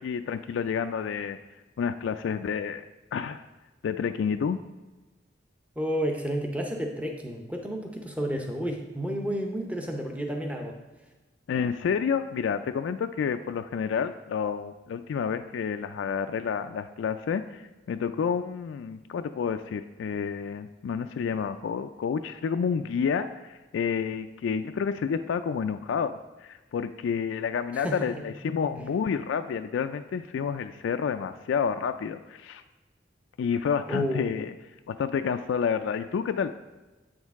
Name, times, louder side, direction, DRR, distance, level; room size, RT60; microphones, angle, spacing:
voice 1, 0.0-1.4 1.8-2.8 3.1-3.4 3.8-4.6 11.5-17.6 17.9-32.6 33.4-34.5 34.9-36.5, left 6 dB, 85° left, 8 dB, 0.3 m, -29 dB
voice 2, 5.8-10.8 27.7-28.1 28.8-28.9 33.9-34.3, equal, 10° right, 3 dB, 0.6 m, -31 dB
8.0 x 6.3 x 3.5 m, 1.2 s
head